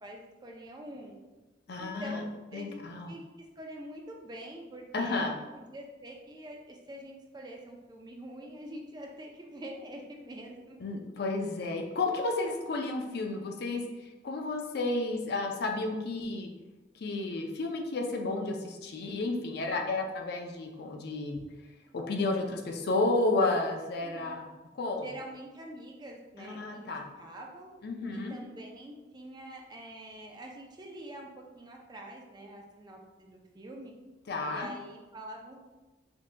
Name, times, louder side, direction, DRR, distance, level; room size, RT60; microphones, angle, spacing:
voice 1, 0.0-1.2 1.8-2.2 2.5-3.2 3.6-5.3 5.5-10.8 24.0-24.4 25.0-27.7 28.1-31.3 31.6-33.9 34.4-35.7, right 1 dB, 25° right, 0 dB, 0.4 m, -45 dB
voice 2, 1.7-2.2 2.5-3.2 4.9-5.4 10.8-16.5 16.9-21.4 21.9-24.5 24.8-25.1 26.4-27.0 27.8-28.4 34.3-34.7, left 2 dB, 60° left, 2 dB, 0.5 m, -32 dB
5.2 x 2.7 x 2.2 m, 1.2 s
head